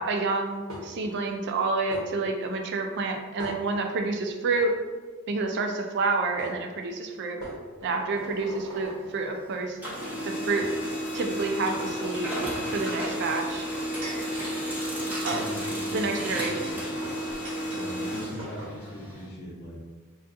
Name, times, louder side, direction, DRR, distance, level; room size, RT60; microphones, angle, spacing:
voice 1, 0.0-4.7 5.3-7.4 7.8-9.8 10.2-10.7 11.1-12.3 12.7-13.7 15.2-15.5 15.9-16.7, right 3 dB, 50° right, 4 dB, 0.3 m, -29 dB
sound 1, 0.7-1.2 1.9-2.0 3.4-4.1 4.5-4.7 5.9-6.0 6.4-6.6 7.4-9.0 9.8-9.9 10.6-10.7 11.2-12.4 13.5-14.3 14.9-17.9 18.1-18.2 18.4-18.7, right 1 dB, 75° right, 0.9 m, -41 dB
Printer, 8.1-9.4 9.7-19.2, equal, 5° right, 0.7 m, -32 dB
voice 2, 15.2-17.0 17.7-19.8, left 1 dB, 45° left, -3 dB, 0.7 m, -40 dB
2.5 x 2.3 x 3.5 m, 1.4 s
head